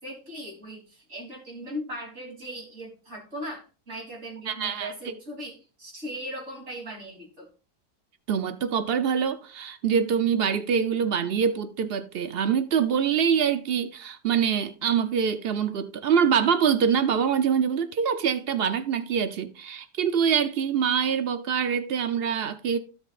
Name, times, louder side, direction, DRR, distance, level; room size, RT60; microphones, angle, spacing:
voice 1, 0.0-7.5, equal, 40° right, 3.6 m, -38 dB
voice 2, 4.5-5.1 8.3-22.8, right 7 dB, 85° right, 0.5 m, -25 dB
16.0 x 6.3 x 2.5 m
omnidirectional pair, 1.9 m